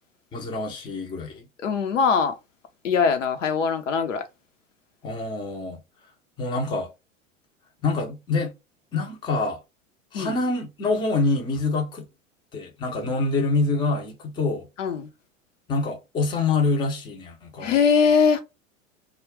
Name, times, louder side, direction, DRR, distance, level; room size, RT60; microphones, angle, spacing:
voice 1, 0.3-1.5 5.0-5.8 6.4-6.9 7.8-8.5 8.9-9.6 10.1-12.1 12.5-14.7 15.7-17.8, left 3 dB, 10° left, 0.5 m, -26 dB
voice 2, 1.6-2.3 2.8-4.2 10.1-10.4 14.8-15.1 17.6-18.4, left 6 dB, 70° left, 0.7 m, -21 dB
2.3 x 2.2 x 3.5 m
figure-of-eight pair, 85°, 39 cm